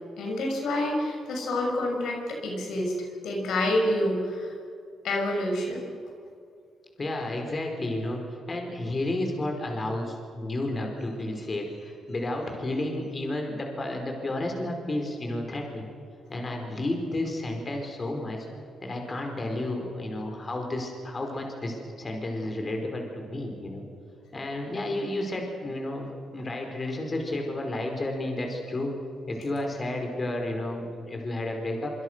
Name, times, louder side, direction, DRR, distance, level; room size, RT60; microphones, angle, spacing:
voice 1, 0.2-2.9 3.2-4.5 5.0-5.8, left 1 dB, 80° left, 0 dB, 5.8 m, -27 dB
voice 2, 7.0-15.9 16.3-18.5 18.8-23.8 24.3-28.9 29.3-32.0, left 1 dB, 30° left, 2 dB, 5.1 m, -32 dB
26.0 x 25.5 x 6.4 m, 2.4 s
cardioid pair, 95°, 0 cm